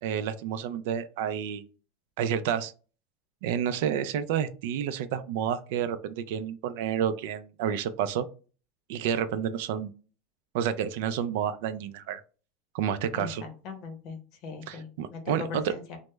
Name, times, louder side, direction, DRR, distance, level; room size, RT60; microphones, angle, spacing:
voice 1, 0.0-1.6 2.2-2.7 3.4-8.3 8.9-9.9 10.5-12.2 12.7-13.4 14.7-15.7, right 9 dB, 65° right, 12 dB, 0.3 m, -30 dB
voice 2, 13.1-16.0, left 4 dB, 45° left, 6 dB, 0.7 m, -40 dB
3.3 x 2.0 x 3.1 m, 0.37 s
supercardioid pair, 170°, 0 cm